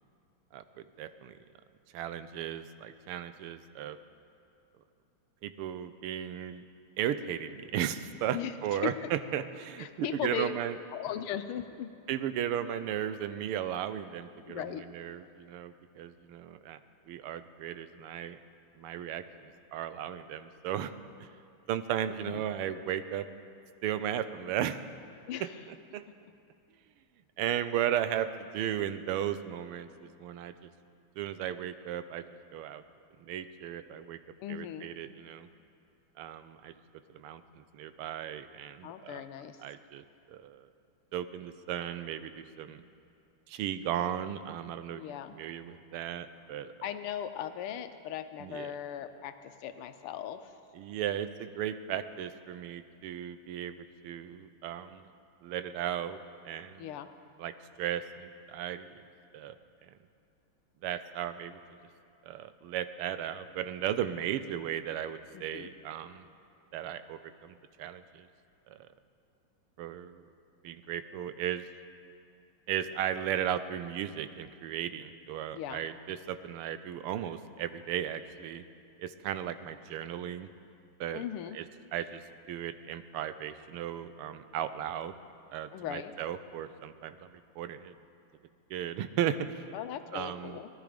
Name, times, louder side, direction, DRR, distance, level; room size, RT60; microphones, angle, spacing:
voice 1, 1.0-1.4 1.9-4.0 5.4-6.6 7.0-10.8 12.1-16.8 17.1-18.4 18.8-20.9 21.2-21.3 21.7-23.3 23.8-24.8 25.4-26.0 27.4-30.7 31.2-32.2 32.5-32.8 33.2-34.2 34.5-35.5 36.2-36.8 37.1-39.2 39.6-40.7 41.1-42.8 43.5-45.0 45.3-46.7 48.4-48.7 50.7-55.1 55.4-56.2 56.4-56.9 57.4-59.0 59.3-59.5 59.8-59.9 60.8-61.6 62.2-66.3 66.7-68.3 68.7-68.9 69.8-70.2 70.6-71.6 72.7-78.6 79.0-80.5 81.0-81.2 81.5-81.6 81.9-82.2 82.5-85.1 85.5-87.9 88.7-89.7 90.1-90.6, right 10 dB, 85° right, 12 dB, 1.6 m, -36 dB
voice 2, 9.8-10.5 10.9-11.9 14.5-14.8 22.2-22.4 25.3-25.5 34.4-34.9 38.8-39.6 44.9-45.4 46.8-50.5 56.8-57.1 65.3-65.7 75.5-75.8 81.1-81.6 85.7-86.1 89.7-90.7, left 9 dB, 85° left, 10 dB, 1.6 m, -38 dB
19.0 x 11.5 x 5.1 m, 2.4 s
omnidirectional pair, 2.4 m